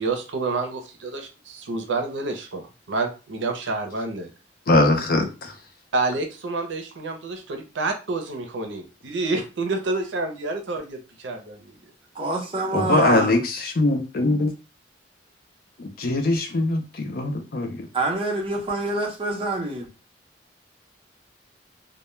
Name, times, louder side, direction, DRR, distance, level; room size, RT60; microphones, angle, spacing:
voice 1, 0.0-4.3 5.9-11.7, right 3 dB, 80° right, 5 dB, 0.6 m, -28 dB
voice 2, 4.7-5.5 12.7-14.5 15.8-17.8, left 2 dB, 55° left, 5 dB, 0.5 m, -22 dB
voice 3, 12.1-13.4 17.9-19.9, right 2 dB, 30° right, 0 dB, 0.6 m, -26 dB
2.1 x 2.1 x 3.0 m, 0.32 s
head